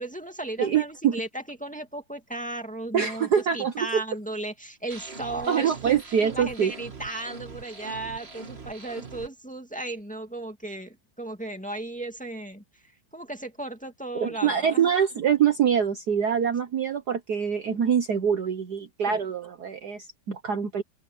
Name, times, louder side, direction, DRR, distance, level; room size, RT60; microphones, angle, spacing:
voice 1, 0.0-3.3 3.5-6.0 6.3-14.9 19.1-19.2, right 2 dB, 5° left, 2.1 m, -35 dB
voice 2, 0.6-1.2 2.9-4.0 5.5-6.7 14.2-20.8, right 8 dB, 55° right, 1.4 m, -24 dB
sound 1, 4.9-9.3, right 4 dB, 30° right, 2.1 m, -42 dB
open air
omnidirectional pair, 2.4 m